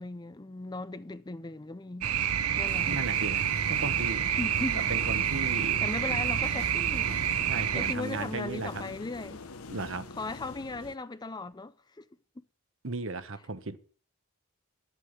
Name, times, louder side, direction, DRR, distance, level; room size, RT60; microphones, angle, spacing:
voice 1, 0.0-3.1 4.4-4.9 5.5-7.1 7.7-9.4 10.1-12.1, left 2 dB, 20° left, 0.5 m, -38 dB
sound 1, 2.0-7.9, right 9 dB, 80° right, 0.8 m, -28 dB
sound 2, 2.7-11.0, left 3 dB, 70° left, 1.1 m, -45 dB
voice 2, 2.8-4.2 4.9-5.8 7.4-8.8 9.7-10.1 12.8-13.8, right 3 dB, 60° right, 1.2 m, -35 dB
11.5 x 8.4 x 8.2 m
head